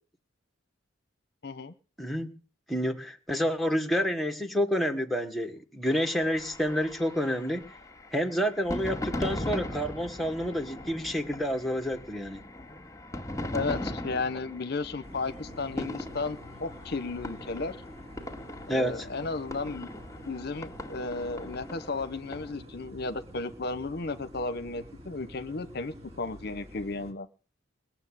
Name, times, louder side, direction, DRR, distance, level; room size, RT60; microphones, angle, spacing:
voice 1, 1.4-1.7 13.5-17.8 18.7-19.9 20.2-27.3, left 3 dB, 50° left, 12 dB, 0.8 m, -34 dB
voice 2, 2.0-2.4 2.7-7.7 8.1-12.4 18.7-19.1, equal, ahead, 5 dB, 1.4 m, -29 dB
sound 1, 5.9-22.5, left 1 dB, 15° left, 2.0 m, -39 dB
sound 2, 15.0-27.1, equal, 30° right, 2.7 m, -48 dB
20.0 x 7.2 x 9.9 m, 0.39 s
head